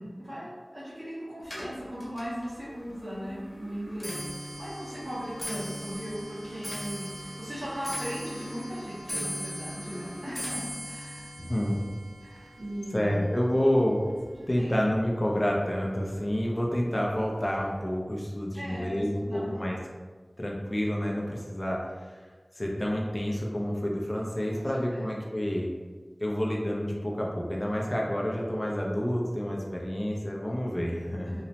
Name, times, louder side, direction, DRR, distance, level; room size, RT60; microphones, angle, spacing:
voice 1, 0.0-11.3 12.2-13.3 14.3-14.8 18.5-19.6 24.5-25.1 31.2-31.4, equal, 75° right, -12 dB, 0.9 m, -38 dB
Clock, 1.4-14.8 15.1-15.6 16.4-16.5 16.8-17.2 17.4-17.5, equal, 80° left, 0.7 m, -40 dB
voice 2, 11.4-11.8 12.9-14.0 14.5-19.8 20.4-22.2 22.5-25.7 26.2-31.4, equal, 30° left, -2 dB, 0.4 m, -29 dB
2.9 x 2.0 x 2.7 m, 1.4 s
wide cardioid pair, 50°, 0 cm